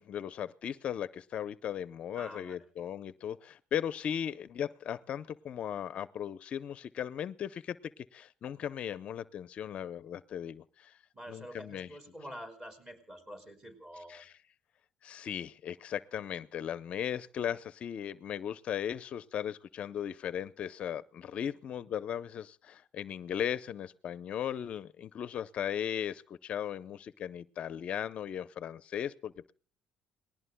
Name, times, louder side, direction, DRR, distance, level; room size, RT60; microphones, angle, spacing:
voice 1, 0.0-11.0 11.3-11.9 14.1-14.3 15.0-29.5, left 9 dB, 45° left, 14 dB, 0.6 m, -37 dB
voice 2, 2.2-2.6 11.1-14.2, equal, 20° right, 7 dB, 5.3 m, -47 dB
29.0 x 19.5 x 2.2 m, 0.43 s
cardioid pair, 145°, 3 cm